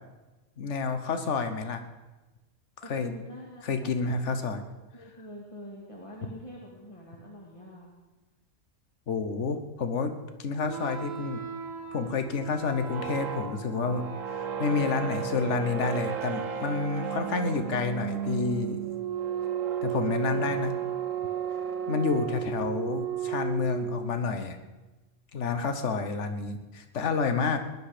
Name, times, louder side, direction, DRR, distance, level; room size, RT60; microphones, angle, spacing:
voice 1, 0.6-1.8 2.9-3.1 3.6-4.6 9.1-11.4 11.9-18.8 19.8-20.7 21.9-24.6 25.3-27.6, left 4 dB, 60° left, 8 dB, 1.4 m, -29 dB
voice 2, 2.8-4.2 4.9-7.9 19.9-20.8 21.9-22.2, equal, 20° left, -3 dB, 2.2 m, -45 dB
sound 1, 10.6-24.4, right 8 dB, 70° right, 1.4 m, -33 dB
19.5 x 11.0 x 5.1 m, 1.2 s
omnidirectional pair, 1.5 m